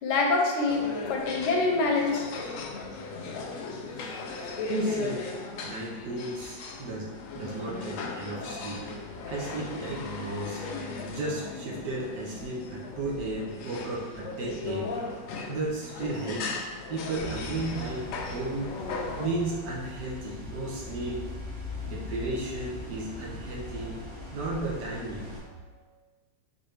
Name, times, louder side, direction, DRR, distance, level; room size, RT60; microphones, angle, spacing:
voice 1, 0.0-2.2, left 3 dB, 70° left, 0 dB, 1.1 m, -25 dB
sound 1, 0.7-19.3, left 3 dB, 90° left, 0.7 m, -37 dB
voice 2, 4.7-5.3 5.6-8.8 9.3-10.6 11.1-15.0 15.5-21.2 21.8-25.8, right 2 dB, 70° right, -4 dB, 1.4 m, -34 dB
sound 2, 17.2-25.4, left 2 dB, 35° right, 1.3 m, -40 dB
4.0 x 4.0 x 3.2 m, 1.3 s
omnidirectional pair, 2.0 m